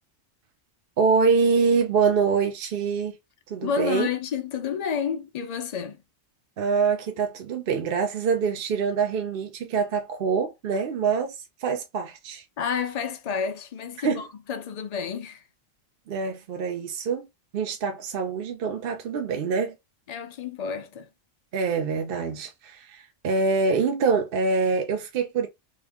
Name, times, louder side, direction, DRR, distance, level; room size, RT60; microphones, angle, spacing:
voice 1, 1.0-3.2 3.5-4.1 6.6-12.4 14.0-14.2 16.1-17.3 17.5-19.7 21.5-25.5, right 5 dB, 60° right, 0.7 m, -25 dB
voice 2, 3.6-6.0 12.6-15.4 20.1-21.1, left 7 dB, 60° left, 0.4 m, -30 dB
3.0 x 2.5 x 3.5 m
omnidirectional pair, 1.3 m